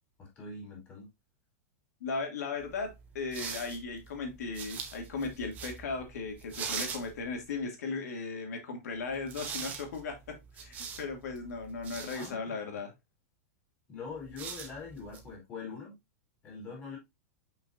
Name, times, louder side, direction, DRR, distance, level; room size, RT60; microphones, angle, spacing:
voice 1, 0.2-1.1 12.1-12.8 13.9-15.9 16.4-17.0, left 4 dB, 20° left, 3.1 m, -43 dB
voice 2, 2.0-12.9, left 4 dB, 80° left, 2.6 m, -37 dB
sound 1, 2.6-7.6 9.1-12.3 14.1-15.4, right 6 dB, 20° right, 1.0 m, -43 dB
6.4 x 5.7 x 2.7 m
supercardioid pair, 175°, 9 cm